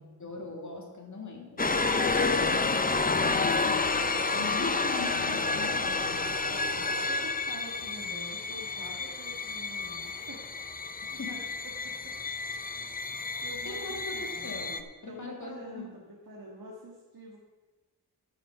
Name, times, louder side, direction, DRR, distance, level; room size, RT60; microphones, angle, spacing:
voice 1, 0.2-1.6 2.3-6.4 11.0-11.4 12.8-12.9 13.6-15.9, left 3 dB, 45° left, 1 dB, 2.0 m, -41 dB
sound 1, 1.6-14.8, left 3 dB, 20° left, 0.6 m, -30 dB
voice 2, 6.5-10.4 11.1-11.4 11.8-12.1 12.5-12.9 13.4-14.5 15.0-17.4, right 1 dB, 60° right, -2 dB, 1.8 m, -47 dB
12.5 x 6.5 x 5.7 m, 1.3 s
wide cardioid pair, 115°, 40 cm